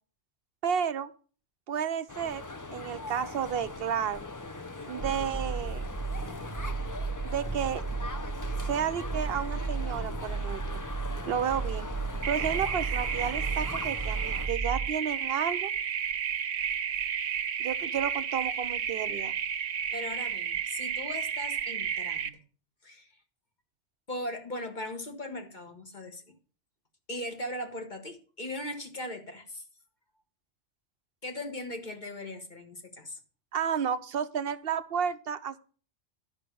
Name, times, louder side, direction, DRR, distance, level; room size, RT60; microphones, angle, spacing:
voice 1, 0.6-1.1 1.7-2.4 2.7-4.2 4.9-5.8 7.2-7.8 8.6-10.8 11.3-11.9 12.3-15.7 17.6-19.3 33.5-35.6, right 8 dB, 55° right, 12 dB, 0.9 m, -32 dB
sound 1, 2.1-14.5, left 3 dB, 20° left, 0.6 m, -41 dB
sound 2, 5.0-14.9, right 4 dB, 15° right, 0.8 m, -34 dB
sound 3, 12.2-22.3, right 8 dB, 80° right, 1.2 m, -32 dB
voice 2, 19.9-22.3 22.8-23.1 24.1-26.4 27.1-29.6 31.2-33.2, left 1 dB, 40° left, 4 dB, 1.8 m, -39 dB
11.5 x 5.8 x 6.9 m, 0.40 s
omnidirectional pair, 1.3 m